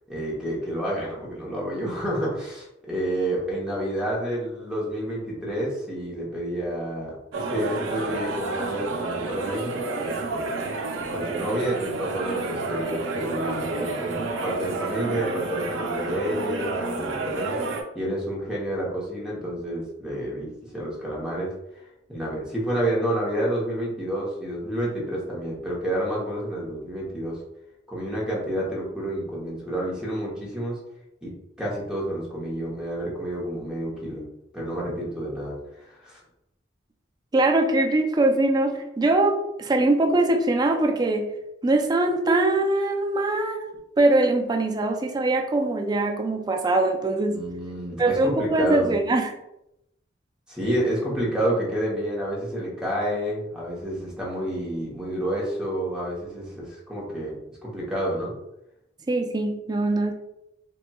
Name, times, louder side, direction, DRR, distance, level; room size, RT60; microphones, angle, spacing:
voice 1, 0.1-10.5 11.0-17.6 17.9-21.8 22.1-27.4 27.9-30.8 31.2-31.3 31.6-34.2 34.5-36.2 47.3-48.9 50.5-58.3, right 1 dB, 5° right, -5 dB, 0.8 m, -29 dB
sound 1, 7.3-17.8, right 3 dB, 85° right, 0.4 m, -30 dB
voice 2, 37.3-41.3 41.6-47.4 48.0-49.3 59.1-60.1, right 2 dB, 20° right, 3 dB, 0.3 m, -22 dB
4.0 x 2.2 x 2.2 m, 0.85 s
head